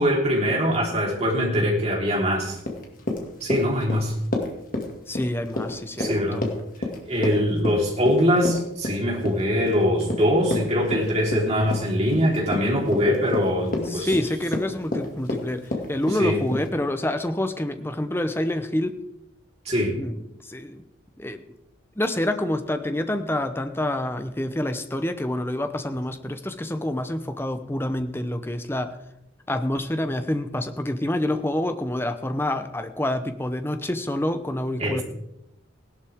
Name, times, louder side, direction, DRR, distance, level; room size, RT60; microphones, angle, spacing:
voice 1, 0.0-2.6 3.4-4.1 6.0-6.4 7.1-14.1 16.2-16.4 19.7-20.0 34.8-35.0, equal, 30° right, -3 dB, 3.7 m, -22 dB
Run, 2.6-16.7, left 2 dB, 45° left, 2.1 m, -30 dB
voice 2, 5.1-6.5 13.8-19.0 19.9-20.8 21.2-21.4 22.0-29.0 29.5-35.0, left 1 dB, 10° left, 9 dB, 0.7 m, -27 dB
17.0 x 11.5 x 3.6 m, 0.84 s
head